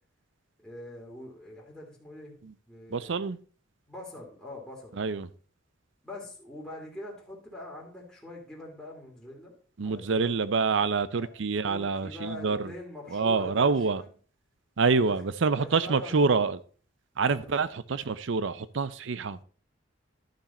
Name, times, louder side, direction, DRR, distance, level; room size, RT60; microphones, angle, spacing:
voice 1, 0.6-2.4 2.7-3.2 3.9-4.9 6.0-9.5 9.8-10.3 11.1-11.3 11.6-14.1 15.0-15.1 15.6-16.4 17.4-17.6, left 1 dB, 5° left, 2.4 m, -43 dB
voice 2, 2.9-3.4 5.0-5.3 9.8-12.7 13.1-14.0 14.8-16.6 17.2-19.4, right 4 dB, 70° right, 0.6 m, -26 dB
11.5 x 5.8 x 4.2 m
head